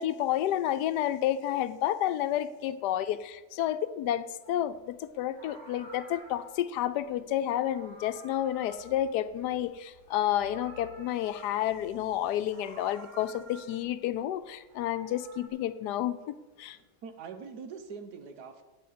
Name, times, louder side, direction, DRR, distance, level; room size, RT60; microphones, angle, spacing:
voice 1, 0.0-16.8, left 11 dB, 90° left, 1.2 m, -30 dB
Meow, 4.4-4.7 5.2-6.7 7.4-9.7 10.0-11.9 12.4-14.0 14.5-15.5, right 2 dB, 30° right, 1.9 m, -52 dB
voice 2, 16.7-18.6, right 5 dB, 75° right, 1.5 m, -44 dB
8.4 x 6.3 x 8.3 m
omnidirectional pair, 1.7 m